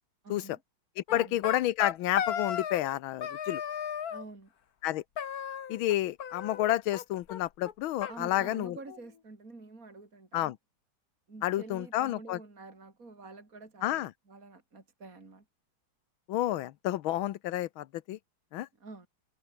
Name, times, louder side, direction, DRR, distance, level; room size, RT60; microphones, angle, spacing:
voice 1, 0.2-0.6 1.1-1.4 4.1-4.5 8.1-10.5 11.3-15.4 18.8-19.1, right 3 dB, 40° right, 4.6 m, -48 dB
voice 2, 1.0-3.6 4.8-5.0 5.7-8.8 10.3-10.6 11.4-12.4 13.8-14.1 16.3-18.2 18.5-18.7, left 14 dB, 90° left, 1.6 m, -30 dB
sound 1, 1.1-3.0 3.2-4.2 5.2-5.9 6.2-7.0 7.3-7.4 7.6-7.7 8.0-9.1, left 8 dB, 50° left, 1.6 m, -36 dB
omnidirectional pair, 2.2 m